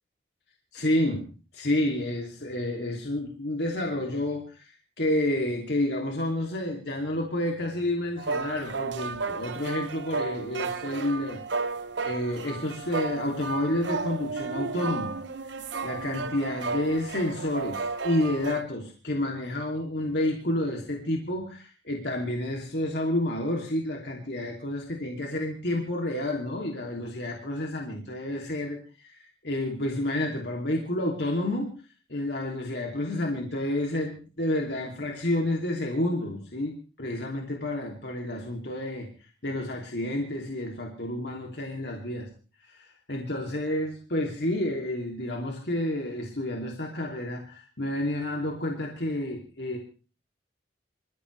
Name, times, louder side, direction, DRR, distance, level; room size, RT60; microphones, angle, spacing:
voice 1, 0.7-1.2 1.5-11.4 12.0-15.1 15.8-31.7 32.1-42.3 42.6-49.8, left 1 dB, 65° left, 0 dB, 3.0 m, -30 dB
sound 1, 8.2-18.6, right 4 dB, 80° right, 0.9 m, -33 dB
27.5 x 15.0 x 3.4 m, 0.37 s
head